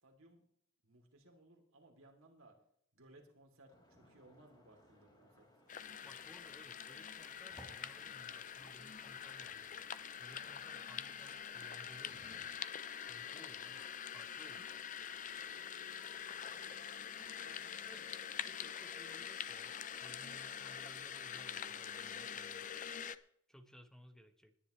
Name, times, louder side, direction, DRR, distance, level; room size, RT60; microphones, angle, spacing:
voice 1, 0.0-0.4 0.8-2.5 2.9-5.5 16.4-16.8 17.4-17.8, right 2 dB, 75° right, 2 dB, 3.2 m, -63 dB
sound 1, 3.7-12.5, equal, 20° left, 3.5 m, -64 dB
sound 2, 5.7-23.2, left 8 dB, 35° left, 0.5 m, -45 dB
voice 2, 6.0-9.7 10.2-12.5 13.1-14.7 17.8-18.1 18.5-22.7 23.5-24.5, equal, 5° left, 7 dB, 1.1 m, -60 dB
20.0 x 10.5 x 3.3 m, 0.69 s
head